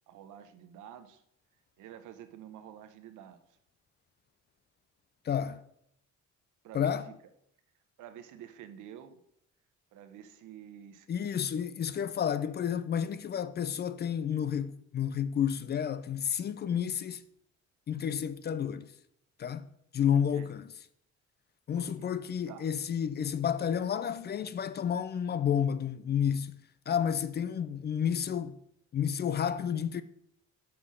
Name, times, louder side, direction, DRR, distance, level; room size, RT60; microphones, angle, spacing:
voice 1, 0.1-1.2 1.8-3.6 6.6-7.0 8.0-9.2 9.9-11.1 20.1-20.5 21.7-22.1 22.5-22.7, right 10 dB, 85° right, 0.9 m, -49 dB
voice 2, 5.2-5.6 6.7-7.1 11.1-17.2 17.9-18.9 19.4-20.7 21.7-26.6 26.9-28.6 28.9-30.0, left 8 dB, 35° left, 0.4 m, -31 dB
5.9 x 5.7 x 6.2 m
cardioid pair, 130°, 30 cm